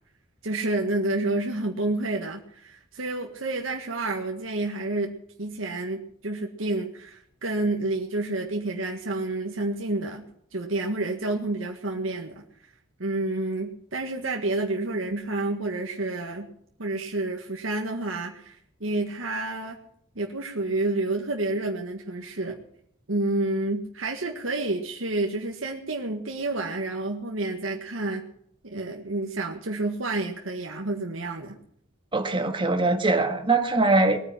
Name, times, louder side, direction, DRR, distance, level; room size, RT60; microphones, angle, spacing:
voice 1, 0.4-5.1 5.4-10.2 10.5-12.4 13.0-16.5 16.8-19.8 20.2-22.6 23.1-28.2 28.6-31.6, right 2 dB, 85° right, 1.7 m, -29 dB
voice 2, 32.1-34.2, right 3 dB, 25° right, 1.7 m, -22 dB
20.5 x 9.7 x 6.0 m
head